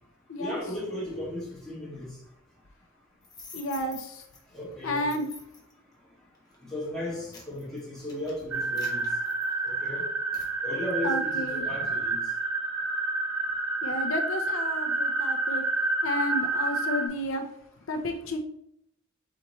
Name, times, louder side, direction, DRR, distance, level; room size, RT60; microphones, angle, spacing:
voice 1, 0.4-2.2 4.5-5.1 6.6-9.1 9.6-10.0 10.6-12.2, left 1 dB, ahead, 1.8 m, -35 dB
sound 1, 3.2-4.4 5.0-5.7 6.4-6.6 7.0-9.9 10.3-10.5, left 4 dB, 20° left, 1.0 m, -48 dB
voice 2, 3.5-4.2 4.8-5.3 11.0-11.6 13.8-15.6 16.0-17.5 17.9-18.4, left 1 dB, 65° left, 0.5 m, -31 dB
sound 2, 8.5-17.1, right 3 dB, 85° right, 0.7 m, -29 dB
4.3 x 4.1 x 3.0 m
head